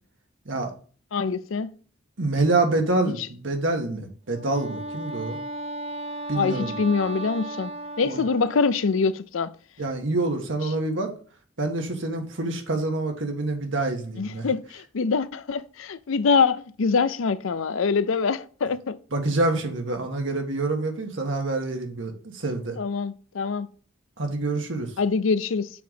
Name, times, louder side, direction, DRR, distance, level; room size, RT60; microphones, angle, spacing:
voice 1, 1.1-1.7 3.0-3.3 6.3-7.7 8.0-9.5 14.2-19.0 22.8-23.7 25.0-25.7, left 5 dB, 85° left, 0.5 m, -24 dB
voice 2, 2.2-5.4 6.3-6.8 8.0-8.2 9.8-11.1 11.6-14.4 19.1-22.8 24.2-24.9, right 2 dB, 70° right, 1.5 m, -26 dB
Wind instrument woodwind instrument, 4.3-9.0, right 1 dB, 30° right, 0.5 m, -35 dB
6.9 x 3.8 x 5.1 m
head